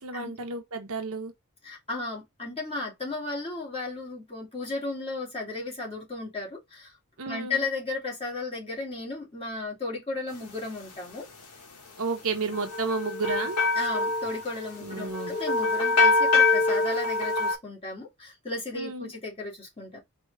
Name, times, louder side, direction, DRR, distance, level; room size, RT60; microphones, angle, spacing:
voice 1, 0.0-1.3 7.2-7.6 12.0-13.6 14.8-15.4 18.7-19.1, right 4 dB, 65° right, 0.9 m, -32 dB
voice 2, 1.6-6.9 7.3-11.3 13.3-13.4 13.8-20.0, left 3 dB, 25° left, 2.0 m, -34 dB
sound 1, 12.5-17.5, left 3 dB, 85° left, 1.4 m, -25 dB
4.6 x 2.9 x 3.2 m
head